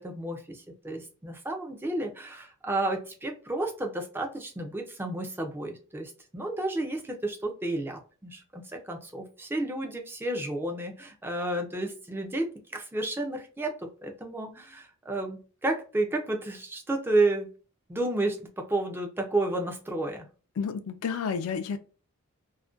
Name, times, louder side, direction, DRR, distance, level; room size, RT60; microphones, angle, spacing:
voice 1, 0.0-17.5 17.9-20.3, right 2 dB, 10° right, 0.4 m, -31 dB
voice 2, 20.6-21.8, left 6 dB, 65° left, 0.3 m, -30 dB
2.4 x 2.1 x 2.4 m
head